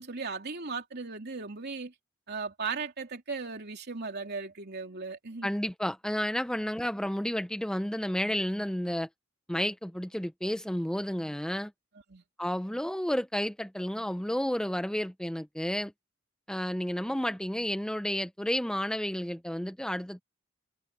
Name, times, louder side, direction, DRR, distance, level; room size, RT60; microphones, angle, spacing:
voice 1, 0.0-1.9 2.3-5.5 12.1-12.2, right 4 dB, 55° right, 3.0 m, -37 dB
voice 2, 5.4-9.1 9.5-11.7 12.4-15.9 16.5-20.2, equal, 5° left, 0.5 m, -31 dB
head